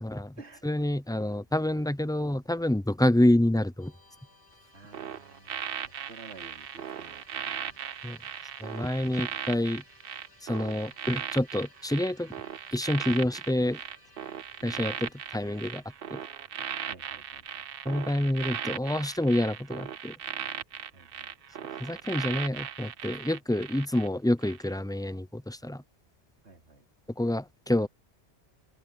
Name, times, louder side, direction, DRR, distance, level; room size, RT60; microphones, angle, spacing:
voice 1, 0.0-0.3 0.6-3.9 8.0-8.2 8.6-9.8 10.4-12.3 12.7-13.8 14.6-15.8 16.1-16.2 17.9-20.1 21.8-25.8 27.2-27.9, left 1 dB, 5° left, 0.4 m, -27 dB
Musical instrument, 3.8-19.0, left 1 dB, 65° left, 5.3 m, -59 dB
voice 2, 4.7-5.7 6.1-7.8 14.6-15.1 16.9-17.6 20.9-21.4 26.4-26.9, right 3 dB, 80° right, 3.6 m, -51 dB
sound 1, 4.9-24.1 24.4-24.7, right 9 dB, 60° right, 0.8 m, -38 dB
open air
omnidirectional pair, 1.1 m